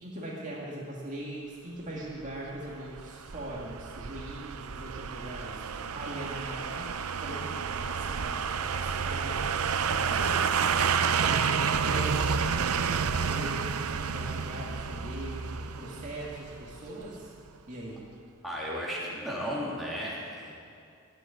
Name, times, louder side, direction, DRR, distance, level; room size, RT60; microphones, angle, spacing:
voice 1, 0.0-5.6 5.9-6.9 7.2-10.4 10.9-13.7 13.9-17.3 17.7-18.0, right 1 dB, 35° right, -5 dB, 2.1 m, -40 dB
sound 1, 2.2-17.2 17.5-17.6, right 6 dB, 75° right, 0.6 m, -30 dB
voice 2, 18.4-20.5, equal, ahead, -7 dB, 3.1 m, -34 dB
14.5 x 8.4 x 10.0 m, 2.4 s
head